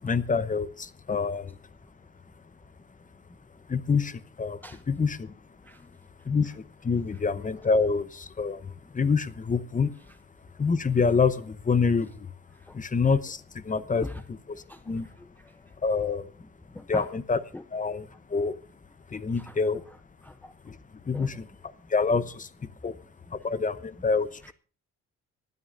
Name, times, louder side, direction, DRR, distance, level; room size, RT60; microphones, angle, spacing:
voice 1, 0.0-1.5 3.7-4.6 4.9-5.3 6.3-9.9 10.6-12.3 12.7-14.1 14.5-15.1 15.8-16.3 16.9-17.4 17.7-18.5 19.1-19.8 20.6-20.8 21.1-21.5 21.9-22.5 22.8-22.9 23.3-24.5, left 5 dB, 25° left, 0.8 m, -26 dB
voice 2, 15.2-15.6 16.7-17.1 17.5-17.6 19.4-19.6 20.2-20.5 21.1-21.3 23.3-23.4 24.4-24.5, left 1 dB, 5° left, 0.5 m, -41 dB
25.5 x 9.5 x 2.6 m
cardioid pair, 90°, 30 cm